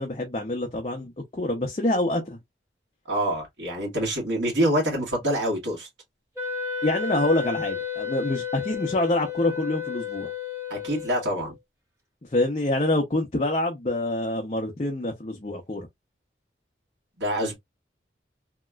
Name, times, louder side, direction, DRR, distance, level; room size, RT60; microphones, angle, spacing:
voice 1, 0.0-2.4 6.8-10.3 12.3-15.9, left 1 dB, 35° left, 0.5 m, -26 dB
voice 2, 3.1-5.9 10.7-11.5 17.2-17.6, right 1 dB, 80° right, 1.5 m, -26 dB
Wind instrument woodwind instrument, 6.4-11.5, left 6 dB, 15° right, 1.6 m, -32 dB
3.1 x 2.9 x 2.2 m
head